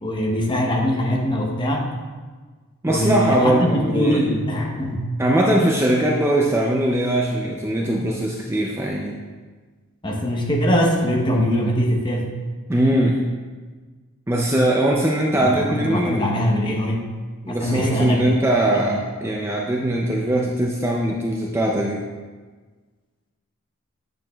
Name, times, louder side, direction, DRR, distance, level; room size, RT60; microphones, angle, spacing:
voice 1, 0.0-1.9 2.9-5.0 5.5-5.7 10.0-12.3 15.3-17.1 17.5-18.4 18.8-19.0, equal, 20° left, 0 dB, 0.8 m, -22 dB
voice 2, 2.8-4.2 5.2-9.2 12.7-13.3 14.3-16.3 17.4-22.0, right 1 dB, 10° right, -1 dB, 0.4 m, -21 dB
8.8 x 6.3 x 2.3 m, 1.4 s
head